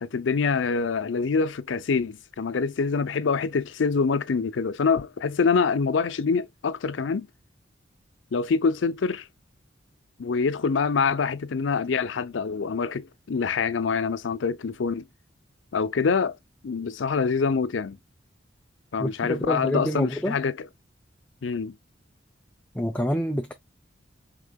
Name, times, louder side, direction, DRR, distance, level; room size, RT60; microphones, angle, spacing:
voice 1, 0.0-7.3 8.3-9.3 10.2-15.1 15.7-16.4 16.6-18.0 18.9-20.6 21.4-21.8, left 5 dB, 80° left, 0.5 m, -25 dB
voice 2, 19.0-20.4 22.7-23.5, equal, 10° left, 0.5 m, -27 dB
4.8 x 3.7 x 2.2 m
head